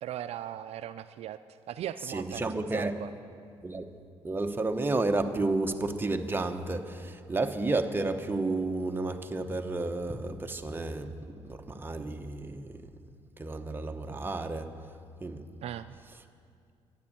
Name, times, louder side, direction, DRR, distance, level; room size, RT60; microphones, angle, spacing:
voice 1, 0.0-1.4 1.7-3.1 15.6-15.9, right 11 dB, 70° right, 12 dB, 0.4 m, -39 dB
voice 2, 2.1-2.9 3.6-3.9 4.2-12.8 13.4-14.7 15.2-15.4, right 2 dB, 20° right, 6 dB, 0.9 m, -31 dB
11.5 x 9.8 x 8.5 m, 2.3 s
cardioid pair, 95°, 11 cm